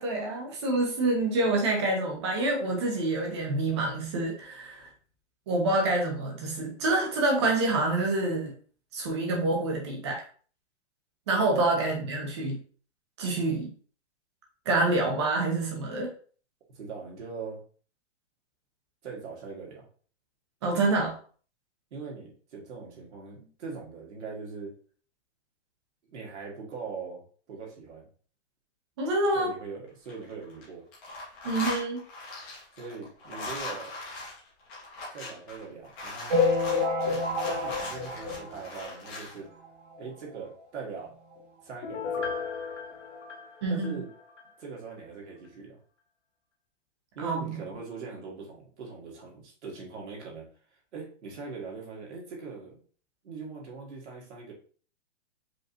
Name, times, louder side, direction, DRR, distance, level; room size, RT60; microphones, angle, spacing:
voice 1, 0.0-4.9 5.5-8.5 8.9-10.2 11.3-12.6 13.2-13.7 14.7-16.1 20.6-21.1 29.0-29.5 31.4-32.0 43.6-44.0 47.2-47.6, right 2 dB, 25° right, 0 dB, 0.9 m, -27 dB
voice 2, 16.7-17.6 19.0-19.9 21.9-24.7 26.1-28.1 29.3-30.8 32.8-33.9 35.1-36.4 36.7-37.2 37.5-39.5 40.0-41.2 41.6-42.5 43.7-44.1 44.6-45.8 47.2-50.5 50.9-52.8 53.2-54.5, right 5 dB, 70° right, -2 dB, 2.0 m, -41 dB
sound 1, 29.9-30.6 30.9-39.4, left 2 dB, 15° left, 1.0 m, -39 dB
sound 2, 36.3-39.2 39.6-39.7 39.9-40.1 40.3-40.4 41.3-41.4 41.9-42.0, left 3 dB, 40° right, 1.4 m, -28 dB
Piano, 41.8-44.5 44.9-45.0, left 5 dB, 75° left, 1.0 m, -36 dB
5.1 x 3.2 x 2.8 m, 0.43 s
hypercardioid pair, 175°, 37 cm